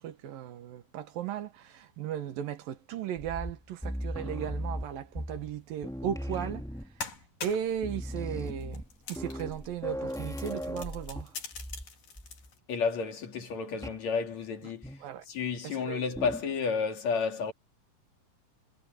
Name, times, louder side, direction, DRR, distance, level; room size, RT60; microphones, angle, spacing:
voice 1, 0.0-6.7 7.4-11.3 15.0-15.2 15.6-16.1, right 9 dB, 85° right, 3.2 m, -36 dB
sound 1, 3.2-5.6 5.8-7.1 7.5-7.6 7.8-11.9 12.2-12.5 13.8-14.1 14.8-15.2 16.2-16.6, equal, ahead, 2.3 m, -38 dB
sound 2, 6.3-6.5 6.8-7.8 8.4-9.7 10.0-12.6, left 5 dB, 70° left, 5.3 m, -43 dB
voice 2, 12.7-17.5, left 5 dB, 55° left, 3.4 m, -31 dB
omnidirectional pair, 3.9 m